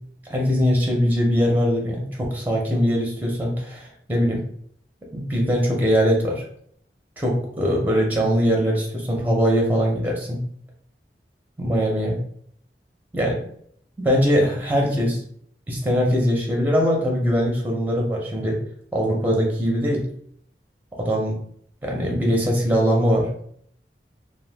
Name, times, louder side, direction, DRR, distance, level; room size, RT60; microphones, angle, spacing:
voice 1, 0.3-4.4 5.1-6.4 7.2-10.4 11.6-12.2 13.1-13.4 14.0-15.2 15.7-18.6 18.9-20.0 21.0-21.3 21.8-23.3, equal, 10° right, -1 dB, 0.5 m, -21 dB
2.6 x 2.1 x 3.2 m, 0.64 s
head